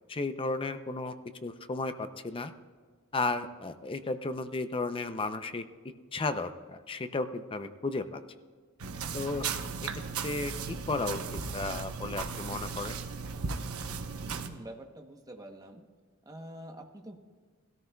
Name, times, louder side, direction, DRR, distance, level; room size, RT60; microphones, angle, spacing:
voice 1, 0.1-1.1 1.4-2.5 3.1-5.6 6.1-8.2 9.1-9.4 9.8-9.9 10.2-11.2 11.5-13.0, left 3 dB, 25° left, 10 dB, 0.5 m, -34 dB
sound 1, 8.8-14.5, right 5 dB, 90° right, 0.8 m, -36 dB
voice 2, 14.2-15.8 16.3-17.2, right 1 dB, 15° right, 4 dB, 0.9 m, -46 dB
19.0 x 13.5 x 2.3 m, 1.5 s
head